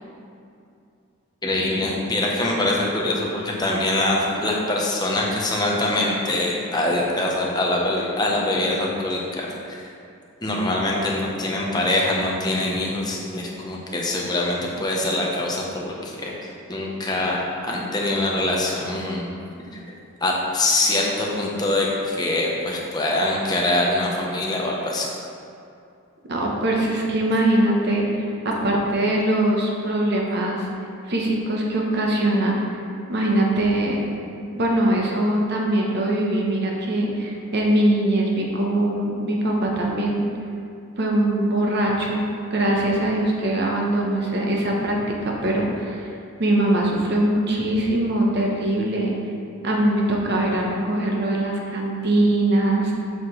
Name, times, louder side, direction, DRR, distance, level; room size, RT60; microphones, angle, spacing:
voice 1, 1.4-9.8 10.4-16.4 16.7-19.2 19.7-19.8 20.2-25.1, left 1 dB, 20° left, -2 dB, 0.8 m, -24 dB
voice 2, 26.3-30.7 31.1-32.6 33.1-34.0 34.5-40.3 41.0-42.2 42.5-46.1 46.4-49.1 49.6-52.9, right 1 dB, 50° right, -1 dB, 0.9 m, -22 dB
7.2 x 5.8 x 3.2 m, 2.5 s
head